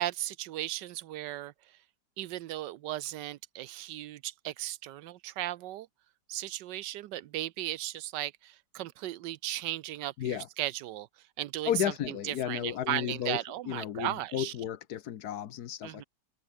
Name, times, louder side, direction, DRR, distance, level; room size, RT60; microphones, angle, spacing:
voice 1, 0.0-1.5 2.2-5.9 6.3-11.1 11.4-11.7 12.1-14.5 15.8-16.0, right 14 dB, 85° right, 1.3 m, -36 dB
voice 2, 11.7-13.4 13.7-16.0, left 10 dB, 65° left, 1.4 m, -33 dB
omnidirectional pair, 1.9 m